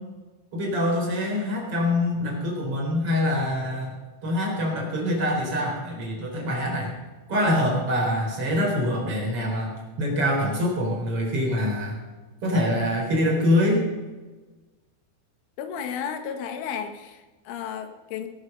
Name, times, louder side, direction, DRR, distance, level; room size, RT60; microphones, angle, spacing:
voice 1, 0.5-3.9 4.2-6.9 7.3-9.7 10.0-12.0 12.4-13.8, left 1 dB, 30° right, -1 dB, 4.6 m, -24 dB
voice 2, 15.6-18.3, left 7 dB, 80° left, 7 dB, 3.7 m, -33 dB
19.5 x 11.5 x 5.6 m, 1.2 s
omnidirectional pair, 5.7 m